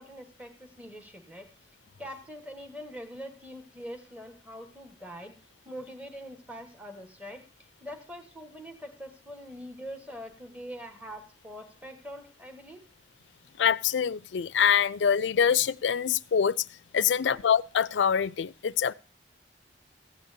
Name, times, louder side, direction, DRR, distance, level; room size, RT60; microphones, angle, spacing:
voice 1, 0.0-1.5 2.0-5.3 5.6-12.8 17.1-17.4, equal, 10° right, 1.3 m, -43 dB
voice 2, 13.6-16.7 16.9-18.9, left 8 dB, 90° left, 0.4 m, -25 dB
15.0 x 8.8 x 2.7 m
head